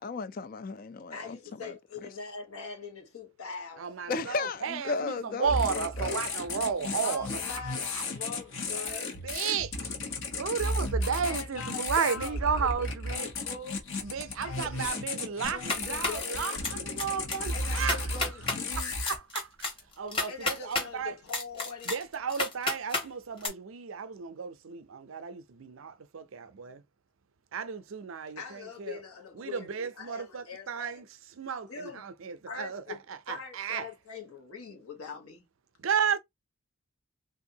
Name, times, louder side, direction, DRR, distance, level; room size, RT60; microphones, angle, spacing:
voice 1, 0.0-1.4 1.6-1.7 4.1-6.2, left 4 dB, 40° left, 0.3 m, -34 dB
voice 2, 1.1-3.9 7.0-9.2 11.2-13.8 14.4-15.0 15.5-16.6 17.5-19.0 20.3-21.9 28.4-31.0 31.7-32.1 32.5-33.0 33.3-35.4, left 5 dB, 85° left, 1.2 m, -43 dB
voice 3, 3.8-7.3 7.9-8.0 9.2-9.7 10.4-13.3 14.0-18.0 18.8-21.1 21.9-26.8 27.5-29.0 29.3-31.1 31.4-33.9 35.8-36.2, right 6 dB, 65° right, 0.5 m, -33 dB
sound 1, 5.4-19.2, left 2 dB, 60° left, 1.0 m, -34 dB
sound 2, 15.4-16.2 16.6-17.0 17.3-17.4 17.8-18.6 19.1-20.9 21.3-23.1 23.4-23.5, left 3 dB, 25° left, 1.1 m, -31 dB
3.5 x 2.5 x 2.7 m
head